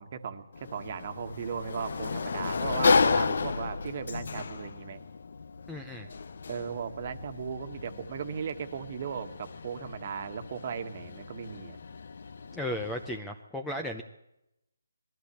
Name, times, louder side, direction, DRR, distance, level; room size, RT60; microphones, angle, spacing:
voice 1, 0.0-5.0 6.5-11.8 13.7-13.9, right 7 dB, 30° right, 8 dB, 1.6 m, -37 dB
Sliding door, 0.5-13.2, left 4 dB, 50° left, 1.0 m, -32 dB
voice 2, 5.7-6.1 12.5-14.0, left 1 dB, 5° left, 3 dB, 0.7 m, -35 dB
21.5 x 15.0 x 8.4 m, 0.85 s
hypercardioid pair, 175°, 0 cm